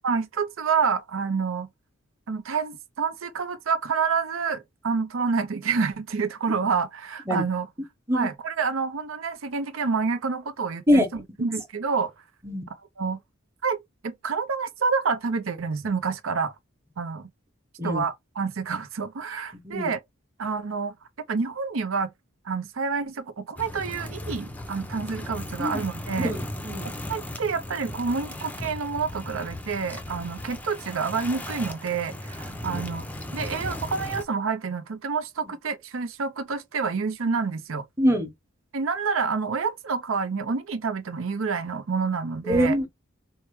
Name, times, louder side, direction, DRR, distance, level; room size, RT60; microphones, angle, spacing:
voice 1, 0.0-1.7 2.3-7.7 8.1-12.1 13.0-13.2 13.6-13.8 14.0-16.5 17.0-17.3 17.8-20.0 20.4-20.9 21.3-22.1 22.4-26.3 27.1-33.1 33.3-37.8 38.7-42.8, right 5 dB, 85° right, 0.6 m, -28 dB
sound 1, 23.6-34.2, left 1 dB, 10° left, 0.5 m, -36 dB
voice 2, 26.2-26.9 32.7-32.8 35.4-35.5 38.0-38.3 42.4-42.9, equal, 15° right, 0.9 m, -23 dB
4.5 x 2.1 x 3.1 m
head